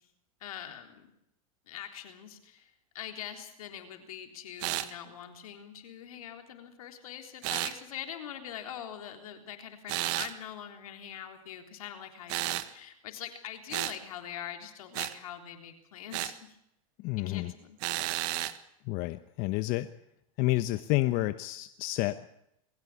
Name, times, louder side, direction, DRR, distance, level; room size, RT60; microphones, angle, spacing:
voice 1, 0.4-1.1 1.7-16.5 17.2-17.8, left 10 dB, 80° left, 5 dB, 3.8 m, -43 dB
sound 1, 4.6-4.9 7.4-7.8 9.9-10.3 12.3-12.7 13.7-14.0 14.9-15.1 16.1-16.4 17.8-18.6, right 17 dB, 60° right, 1.5 m, -32 dB
voice 2, 17.0-17.5 18.8-19.9 20.4-22.3, left 19 dB, 50° left, 11 dB, 1.0 m, -30 dB
22.0 x 16.5 x 8.6 m, 0.79 s
hypercardioid pair, 110°, 18 cm